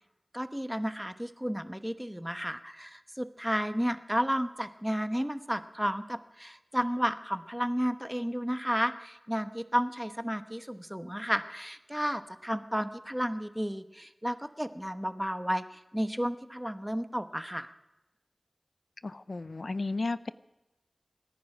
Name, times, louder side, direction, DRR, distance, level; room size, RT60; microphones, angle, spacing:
voice 1, 0.3-17.7, equal, 5° right, 10 dB, 1.0 m, -32 dB
voice 2, 19.0-20.3, left 3 dB, 75° left, 15 dB, 0.4 m, -33 dB
27.0 x 10.5 x 4.9 m, 0.98 s
wide cardioid pair, 40°, 0 cm